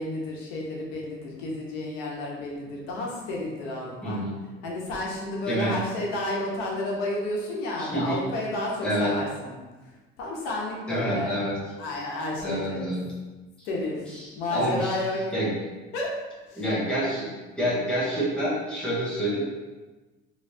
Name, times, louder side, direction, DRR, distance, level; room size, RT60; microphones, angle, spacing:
voice 1, 0.0-4.2 4.6-9.6 10.2-11.4 11.8-13.0 13.6-15.3 15.9-16.2 16.5-16.6, left 1 dB, 85° left, -2 dB, 0.9 m, -31 dB
voice 2, 4.0-4.4 5.5-5.8 7.8-8.2 8.8-9.1 10.9-11.5 12.4-13.0 13.6-13.7 14.1-15.0 15.3-15.5 16.6-19.4, equal, 5° left, -7 dB, 0.8 m, -28 dB
3.3 x 3.1 x 2.6 m, 1.2 s
cardioid pair, 160°, 21 cm